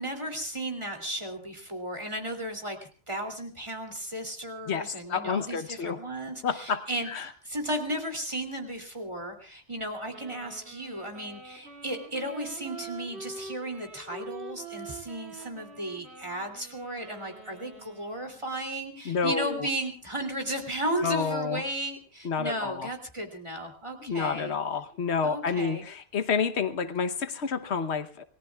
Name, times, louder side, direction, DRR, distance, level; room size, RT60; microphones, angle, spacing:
voice 1, 0.0-2.8 3.1-24.5 25.2-25.8, right 1 dB, 25° right, 4 dB, 3.0 m, -35 dB
voice 2, 4.7-6.0 6.4-7.3 19.0-19.7 21.0-21.6 22.2-22.9 24.0-28.2, left 5 dB, 85° left, 11 dB, 1.3 m, -29 dB
Wind instrument woodwind instrument, 10.1-18.6, right 4 dB, 85° right, 2.9 m, -45 dB
28.0 x 19.0 x 2.4 m, 0.38 s
omnidirectional pair, 1.1 m